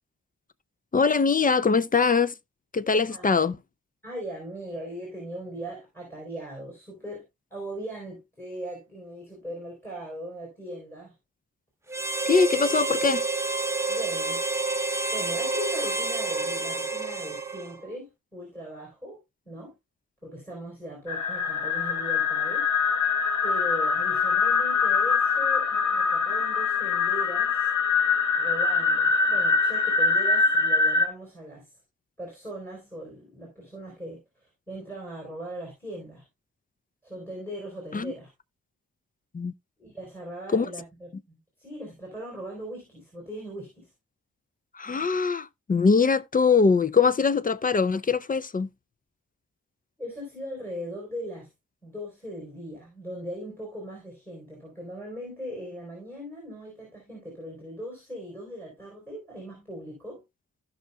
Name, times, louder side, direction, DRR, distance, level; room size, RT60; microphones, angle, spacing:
voice 1, 0.9-2.3 2.7-3.6 12.3-13.2 37.9-38.1 39.3-39.5 40.5-40.7 44.8-48.7, left 5 dB, 30° left, 0.4 m, -22 dB
voice 2, 3.1-3.5 4.0-7.2 7.5-11.1 13.9-14.4 15.1-19.7 20.2-22.7 23.4-27.7 28.4-31.7 32.2-36.2 37.0-38.3 39.8-43.9 50.0-51.5 51.8-60.2, equal, 5° left, 4.0 m, -39 dB
Harmonica, 11.9-17.9, right 3 dB, 10° right, 0.8 m, -29 dB
sound 1, 21.1-31.1, left 4 dB, 75° left, 1.7 m, -24 dB
16.0 x 5.6 x 2.3 m
wide cardioid pair, 105°, 31 cm